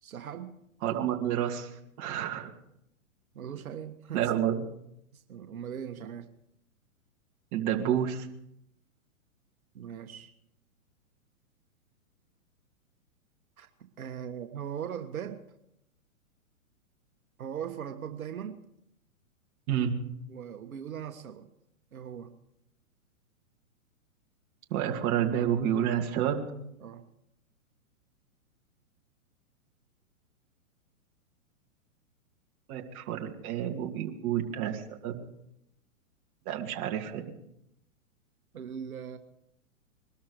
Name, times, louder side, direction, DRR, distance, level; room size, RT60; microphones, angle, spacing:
voice 1, 0.0-0.6 3.3-4.3 5.1-6.3 9.7-10.3 13.6-13.7 14.0-15.4 17.4-18.6 20.3-21.5 21.9-22.3 26.8-27.1 38.5-39.2, right 8 dB, 75° right, 6 dB, 1.5 m, -39 dB
voice 2, 0.8-1.7 2.0-2.5 4.1-4.6 7.5-8.3 19.7-19.9 24.7-26.4 32.7-35.2 36.5-37.2, right 10 dB, 35° right, 2 dB, 2.4 m, -29 dB
22.0 x 13.0 x 4.9 m, 0.78 s
hypercardioid pair, 130°, 42 cm